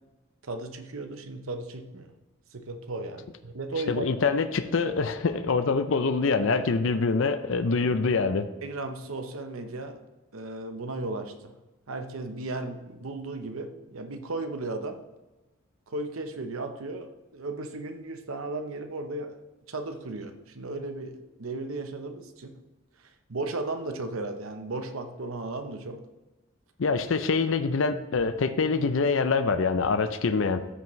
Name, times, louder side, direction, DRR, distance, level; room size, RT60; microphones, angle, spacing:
voice 1, 0.4-2.1 2.5-4.1 4.8-4.9 8.6-10.0 10.3-11.5 11.9-15.0 15.9-19.4 19.7-22.6 23.3-26.0, right 2 dB, 80° right, 7 dB, 0.8 m, -35 dB
voice 2, 3.9-8.5 26.8-30.7, left 4 dB, 70° left, 10 dB, 0.5 m, -25 dB
13.5 x 6.0 x 3.1 m, 1.1 s
head